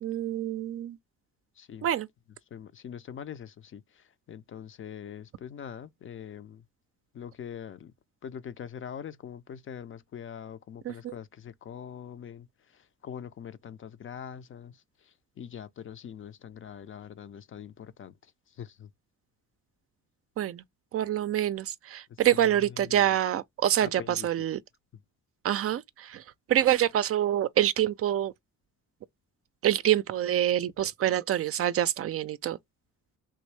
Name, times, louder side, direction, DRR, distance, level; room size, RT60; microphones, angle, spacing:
voice 1, 0.0-1.0 1.8-2.1 10.9-11.1 20.4-20.6 20.9-24.6 25.4-26.2 26.5-28.3 29.6-32.6, right 11 dB, 50° right, 0.4 m, -26 dB
voice 2, 1.6-1.9 2.5-6.7 7.1-7.9 8.2-18.9 22.1-23.2 23.8-24.3 24.9-25.0, left 8 dB, 45° left, 0.5 m, -43 dB
3.5 x 2.6 x 3.1 m
cardioid pair, 90°, 30 cm